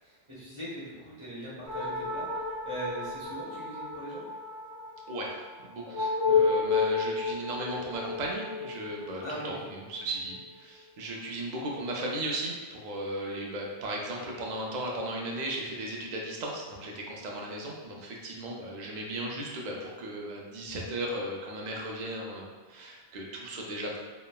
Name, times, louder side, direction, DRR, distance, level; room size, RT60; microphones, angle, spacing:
voice 1, 0.0-4.2 6.3-6.8 9.2-9.5, equal, 30° right, -10 dB, 0.8 m, -40 dB
sound 1, 1.7-10.5, left 4 dB, 85° left, 1.1 m, -31 dB
voice 2, 5.1-24.0, right 1 dB, 55° right, -2 dB, 0.5 m, -36 dB
3.0 x 2.1 x 2.2 m, 1.4 s
omnidirectional pair, 1.1 m